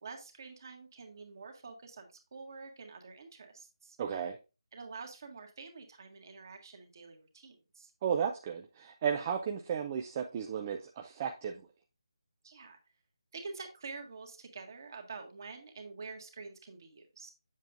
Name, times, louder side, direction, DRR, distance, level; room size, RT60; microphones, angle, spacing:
voice 1, 0.0-4.0 4.7-7.9 12.4-12.8 13.3-17.3, right 4 dB, 45° right, 4 dB, 1.7 m, -47 dB
voice 2, 4.0-4.4 8.0-11.5, right 7 dB, 25° right, 3 dB, 0.5 m, -34 dB
7.6 x 7.3 x 2.5 m, 0.30 s
figure-of-eight pair, 155°, 3 cm